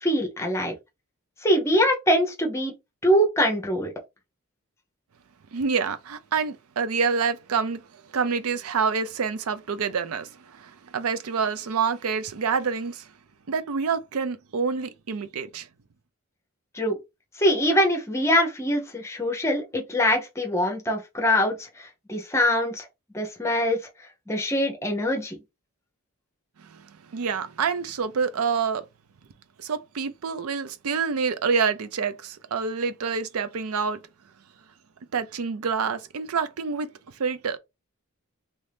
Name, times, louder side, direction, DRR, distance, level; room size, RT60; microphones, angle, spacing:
voice 1, 0.0-0.7 1.4-2.7 3.0-3.9 16.7-17.0 17.4-22.9 23.1-23.8 24.3-25.4, equal, 10° left, 0.7 m, -23 dB
voice 2, 5.5-7.9 8.1-13.1 13.5-15.7 26.6-28.8 29.6-34.0 35.1-36.9 37.2-37.6, right 5 dB, 75° right, 0.5 m, -27 dB
3.0 x 2.7 x 3.3 m
head